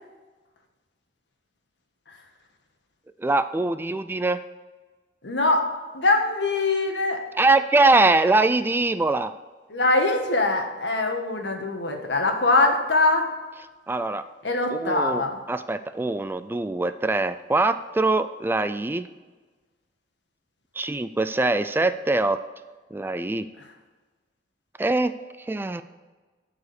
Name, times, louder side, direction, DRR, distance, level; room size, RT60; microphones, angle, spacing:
voice 1, 3.2-4.4 7.4-9.3 13.9-14.2 14.7-19.1 20.8-22.4 22.9-23.5 24.8-25.1 25.5-25.8, right 2 dB, 10° right, 12 dB, 0.3 m, -23 dB
voice 2, 5.2-5.6 5.9-7.2 9.7-13.3 14.4-15.4, left 2 dB, 80° left, 3 dB, 1.6 m, -22 dB
12.5 x 4.9 x 6.7 m, 1.3 s
head